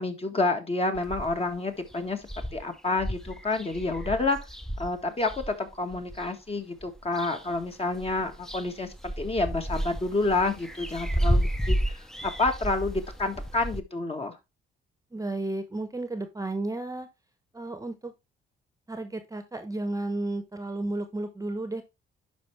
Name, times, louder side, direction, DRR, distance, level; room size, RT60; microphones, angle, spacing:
voice 1, 0.0-2.2 2.5-4.4 4.8-11.8 12.2-14.3, left 3 dB, 30° left, 5 dB, 1.6 m, -29 dB
sound 1, 0.9-1.5 1.9-2.0 2.2-6.3 6.8-7.6 7.9-13.8, equal, 5° left, 0.7 m, -32 dB
voice 2, 15.1-17.1 17.5-18.1 18.9-21.8, right 2 dB, 15° right, 9 dB, 1.0 m, -33 dB
11.0 x 4.4 x 3.3 m, 0.23 s
cardioid pair, 90°, 20 cm